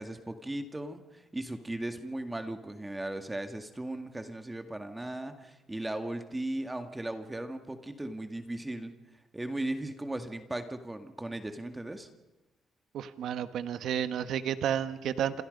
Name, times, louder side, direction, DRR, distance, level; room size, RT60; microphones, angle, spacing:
voice 1, 0.0-8.9 9.3-12.1, right 1 dB, 10° right, 7 dB, 2.0 m, -37 dB
voice 2, 12.9-15.4, right 9 dB, 75° right, 11 dB, 1.3 m, -31 dB
29.5 x 26.5 x 5.4 m, 1.0 s
cardioid pair, 110°, 0 cm